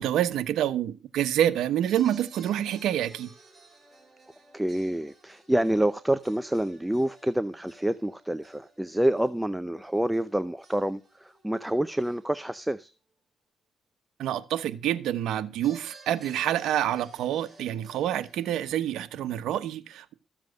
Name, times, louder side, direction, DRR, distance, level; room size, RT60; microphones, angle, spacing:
voice 1, 0.0-3.3 14.2-20.2, right 11 dB, 80° right, 1.1 m, -27 dB
sound 1, 1.8-12.7 15.6-18.7, right 2 dB, 25° right, 4.4 m, -54 dB
voice 2, 4.5-12.9, right 1 dB, 5° right, 0.7 m, -27 dB
14.0 x 7.5 x 6.4 m
cardioid pair, 90°, 0 cm